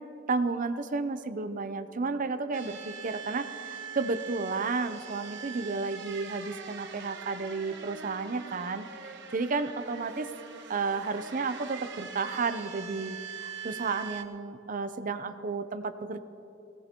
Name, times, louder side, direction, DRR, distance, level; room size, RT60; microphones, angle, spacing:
voice 1, 0.3-10.3 10.7-16.2, right 4 dB, 40° right, 11 dB, 0.6 m, -32 dB
sound 1, 2.5-14.2, right 6 dB, 65° right, 1.1 m, -43 dB
21.0 x 17.5 x 3.0 m, 3.0 s
head